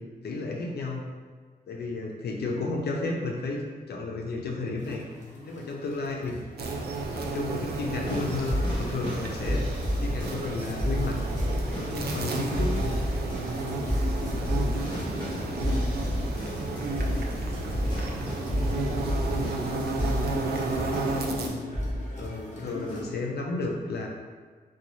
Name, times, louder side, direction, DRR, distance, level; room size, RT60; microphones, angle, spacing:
voice 1, 0.2-1.0 1.7-5.0 5.5-6.3 7.1-9.6 10.0-11.2 11.5-12.7 15.6-15.7 22.2-24.1, left 3 dB, 80° left, 0 dB, 0.6 m, -32 dB
sound 1, 4.8-23.0, left 2 dB, 45° left, 0.8 m, -41 dB
voice 2, 5.3-5.7 13.1-13.7 14.3-20.2, equal, 5° right, -9 dB, 1.4 m, -47 dB
sound 2, 6.6-21.5, right 2 dB, 70° right, 0.4 m, -32 dB
sound 3, 8.1-21.3 21.7-22.1 22.9-23.0, equal, 30° left, 1.3 m, -31 dB
3.9 x 2.3 x 3.0 m, 1.5 s
cardioid pair, 80°, 17 cm